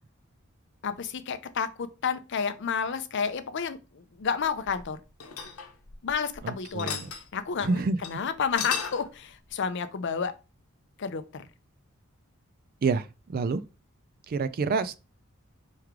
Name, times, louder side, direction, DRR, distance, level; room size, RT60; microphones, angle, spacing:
voice 1, 0.8-5.0 6.0-7.0 7.3-10.3 11.0-11.5, left 6 dB, 55° left, 0.5 m, -31 dB
sound 1, 4.4-6.4 6.6-7.3 7.6-7.7 8.0-8.1 8.4-9.1, left 7 dB, 85° left, 0.9 m, -35 dB
voice 2, 6.4-7.1 7.6-8.0 12.8-13.6 14.3-15.0, right 4 dB, 45° right, 0.3 m, -28 dB
4.6 x 3.2 x 3.6 m
head